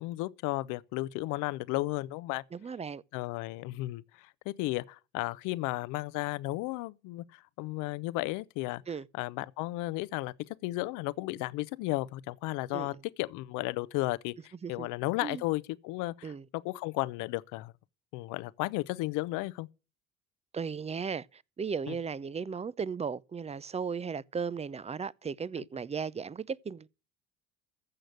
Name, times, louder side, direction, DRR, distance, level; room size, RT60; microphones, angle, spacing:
voice 1, 0.0-2.4 3.1-8.8 9.2-10.3 10.6-17.7 18.1-19.7 21.9-22.0 25.6-25.7, left 19 dB, 70° left, 0.8 m, -34 dB
voice 2, 2.5-3.0 8.9-9.1 12.7-12.9 14.6-14.9 15.2-15.4 16.2-16.4 20.5-26.9, right 6 dB, 20° right, 0.5 m, -36 dB
14.5 x 6.5 x 6.5 m
hypercardioid pair, 65°, 32 cm